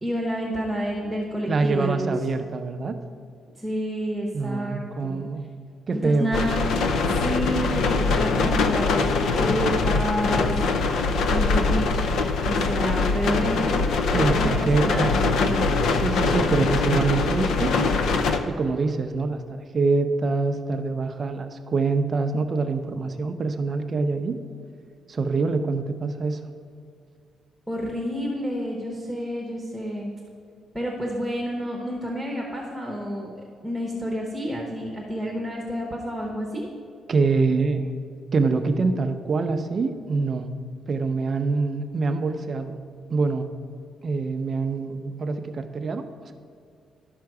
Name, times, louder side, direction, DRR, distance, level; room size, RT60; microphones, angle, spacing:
voice 1, 0.0-2.1 3.6-5.2 5.9-6.6 7.0-10.6 11.3-12.1 12.4-13.7 14.0-15.7 27.7-30.1 30.7-36.7, equal, ahead, -1 dB, 0.9 m, -29 dB
voice 2, 1.5-3.0 4.3-5.4 5.9-6.3 14.1-15.1 16.0-17.7 18.5-24.4 25.1-26.4 37.1-37.9 38.3-40.5 40.9-42.8 43.1-43.5 44.0-46.3, right 4 dB, 30° right, 7 dB, 0.5 m, -25 dB
sound 1, 6.3-18.4, left 3 dB, 65° left, 0.5 m, -23 dB
12.0 x 5.7 x 4.7 m, 2.3 s
cardioid pair, 175°, 0 cm